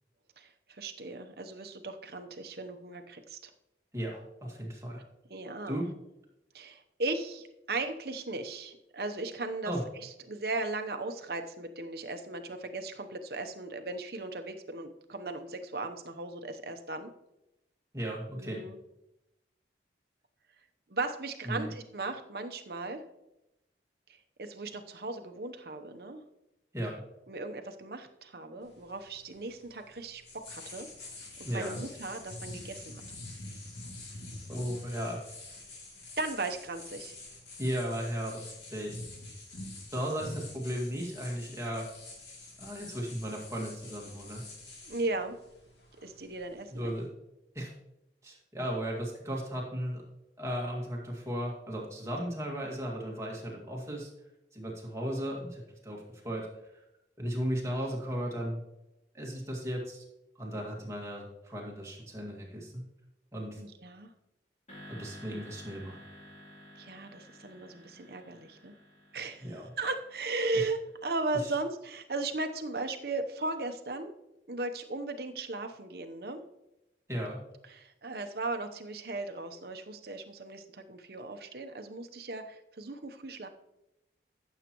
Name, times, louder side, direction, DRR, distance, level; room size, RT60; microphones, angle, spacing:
voice 1, 0.4-3.4 5.3-5.8 6.5-9.7 10.0-17.1 18.4-18.8 20.9-23.0 24.4-26.2 27.3-30.2 30.5-30.9 31.5-33.0 36.2-37.2 44.8-45.4 46.0-46.9 63.6-64.1 66.8-68.7 69.1-69.5 69.8-74.1 74.5-76.4 77.7-83.5, right 2 dB, 60° right, 6 dB, 0.9 m, -37 dB
voice 2, 3.9-5.0 5.7-5.9 9.6-9.8 17.9-18.6 21.5-21.7 26.7-27.0 31.5-31.8 34.5-35.2 37.6-39.0 39.9-41.9 42.6-44.4 46.7-47.1 47.5-47.7 48.2-50.0 50.4-54.1 54.5-56.5 57.2-58.6 59.1-60.0 60.4-62.8 63.3-63.6 64.9-66.0 69.4-69.7 70.6-70.7 71.3-71.5 77.1-77.4, equal, 15° right, -2 dB, 2.0 m, -35 dB
sound 1, 28.6-47.1, left 2 dB, 70° left, 2.7 m, -47 dB
sound 2, 64.7-71.1, equal, 40° left, 3.0 m, -52 dB
14.5 x 7.4 x 3.0 m, 0.89 s
head